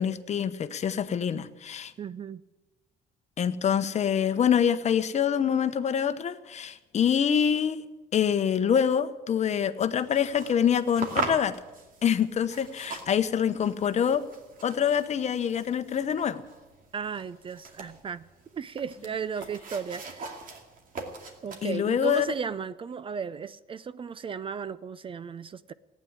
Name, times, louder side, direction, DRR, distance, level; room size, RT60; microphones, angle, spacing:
voice 1, 0.0-1.9 3.4-7.8 8.1-11.5 12.0-14.2 14.6-16.4 21.6-22.3, left 8 dB, 40° left, 0.9 m, -25 dB
voice 2, 2.0-2.4 16.9-18.3 18.5-20.4 21.4-25.7, right 6 dB, 30° right, 0.5 m, -35 dB
sound 1, 9.8-22.4, right 4 dB, 55° right, 2.4 m, -41 dB
15.0 x 9.3 x 9.8 m
cardioid pair, 110°, 17 cm